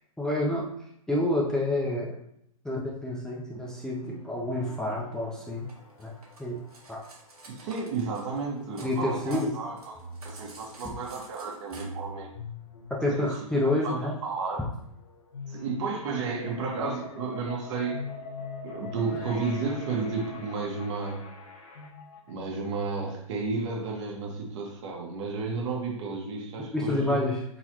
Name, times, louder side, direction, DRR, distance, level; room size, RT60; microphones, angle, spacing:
voice 1, 0.2-0.7 1.1-2.2 2.6-5.7 6.0-6.1 6.4-6.6 6.9-7.0 8.8-9.5 13.0-14.2 26.7-27.4, left 1 dB, 5° left, -4 dB, 0.6 m, -28 dB
sound 1, 3.5-21.9, left 3 dB, 75° left, 1.3 m, -46 dB
Cutlery silverware, 5.7-9.0 9.2-11.8, right 3 dB, 90° right, 1.6 m, -50 dB
voice 2, 7.5-9.9 10.2-12.3 13.1-13.5 13.8-14.7 15.5-18.1 18.6-21.2 22.3-27.3, right 4 dB, 50° right, 0 dB, 1.4 m, -32 dB
sound 2, 16.1-22.4, left 3 dB, 40° left, 0.7 m, -44 dB
4.5 x 3.8 x 3.0 m, 0.74 s
hypercardioid pair, 120°, 19 cm